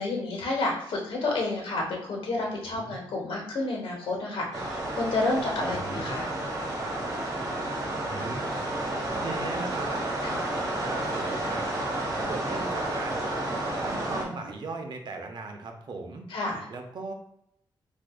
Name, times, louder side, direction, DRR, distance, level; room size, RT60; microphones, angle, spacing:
voice 1, 0.0-6.3 10.2-10.4 16.3-16.7, left 2 dB, 80° left, 0 dB, 1.1 m, -30 dB
sound 1, 4.5-14.3, right 1 dB, 40° right, 1.2 m, -31 dB
voice 2, 5.7-6.2 8.1-8.7 9.1-10.0 10.8-11.7 12.3-13.2 13.8-16.3 16.7-17.1, right 3 dB, 55° right, 4 dB, 0.6 m, -38 dB
4.6 x 2.6 x 2.2 m, 0.75 s
cardioid pair, 90°, 9 cm